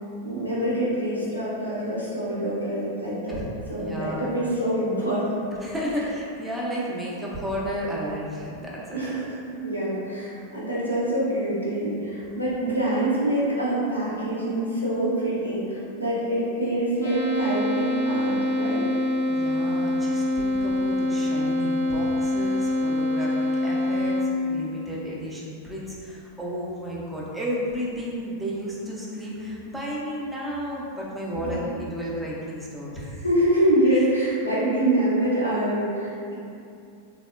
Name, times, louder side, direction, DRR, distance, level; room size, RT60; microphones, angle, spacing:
voice 1, 0.2-3.4 3.7-5.4 8.9-19.0 31.4-31.8 33.2-36.4, right 1 dB, 85° left, -7 dB, 0.7 m, -25 dB
voice 2, 3.8-4.2 5.6-9.1 19.3-24.1 24.4-33.2, equal, 5° right, -6 dB, 0.5 m, -32 dB
sound 1, 17.0-24.2, left 1 dB, 75° right, 0.9 m, -25 dB
3.4 x 2.0 x 2.3 m, 2.6 s
figure-of-eight pair, 90°, 0 cm